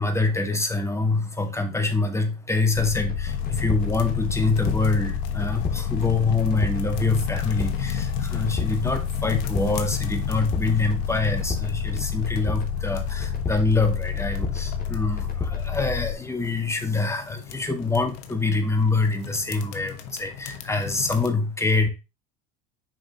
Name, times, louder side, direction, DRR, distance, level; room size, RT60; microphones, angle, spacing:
voice 1, 0.0-21.9, left 3 dB, 10° left, 5 dB, 1.7 m, -25 dB
sound 1, 2.7-16.1, left 7 dB, 25° left, 2.6 m, -28 dB
sound 2, 3.3-21.3, left 7 dB, 65° left, 1.3 m, -36 dB
7.5 x 5.4 x 2.9 m, 0.28 s
supercardioid pair, 95°, 32 cm